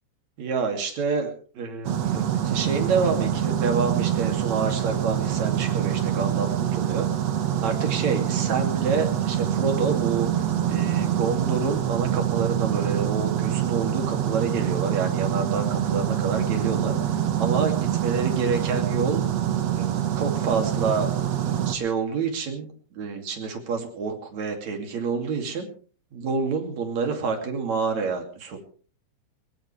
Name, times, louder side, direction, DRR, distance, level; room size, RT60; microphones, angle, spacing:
voice 1, 0.4-7.1 7.6-16.9 17.3-19.2 19.7-21.1 21.4-22.7 22.9-25.7 26.1-28.6, right 5 dB, 40° right, 4 dB, 3.4 m, -28 dB
sound 1, 1.8-21.7, right 10 dB, 90° right, 1.4 m, -25 dB
21.0 x 19.0 x 3.4 m, 0.41 s
omnidirectional pair, 5.5 m